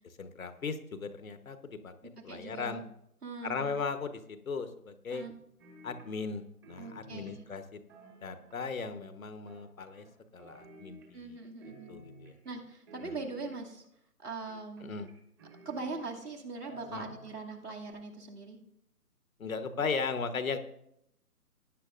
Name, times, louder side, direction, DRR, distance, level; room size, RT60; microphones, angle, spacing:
voice 1, 0.2-1.9 2.2-2.8 3.4-5.3 5.8-7.8 8.2-10.1 10.3-11.4 11.9-12.3 13.0-13.1 14.8-15.1 16.9-17.1 19.4-20.6, left 5 dB, 60° left, 10 dB, 1.2 m, -37 dB
voice 2, 2.0-2.8 3.2-3.7 5.1-5.3 6.8-7.4 11.1-12.0 12.4-13.8 14.2-15.0 15.6-18.6, right 3 dB, 80° right, 0 dB, 2.6 m, -41 dB
sound 1, 5.6-6.4 6.6-8.8 9.5-10.1 10.4-11.3 11.6-12.5 12.9-13.9 14.5-16.3 16.6-17.6 17.9-18.0, right 2 dB, 15° right, 1.6 m, -53 dB
18.5 x 9.7 x 2.5 m, 0.75 s
figure-of-eight pair, 150°, 46 cm